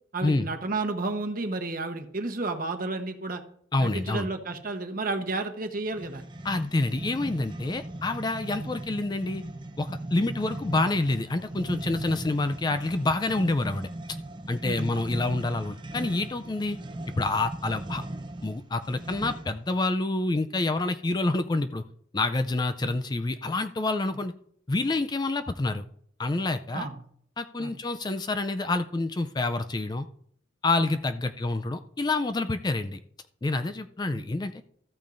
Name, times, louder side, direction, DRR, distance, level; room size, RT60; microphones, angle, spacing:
voice 1, 0.1-3.4 3.8-6.2 8.6-8.7 14.6-14.9 22.8-22.9 26.7-27.0 27.6-27.7 30.8-30.9, right 3 dB, 45° right, 7 dB, 1.1 m, -31 dB
voice 2, 3.7-4.3 6.4-9.4 9.8-14.2 14.5-16.8 17.2-18.0 18.4-21.8 22.1-24.3 24.7-25.8 26.2-26.9 27.4-30.1 30.6-33.0 33.4-34.6, left 2 dB, 20° left, 10 dB, 0.4 m, -27 dB
sound 1, 5.9-19.6, right 1 dB, 25° right, 0.7 m, -38 dB
14.0 x 8.7 x 2.6 m, 0.64 s
head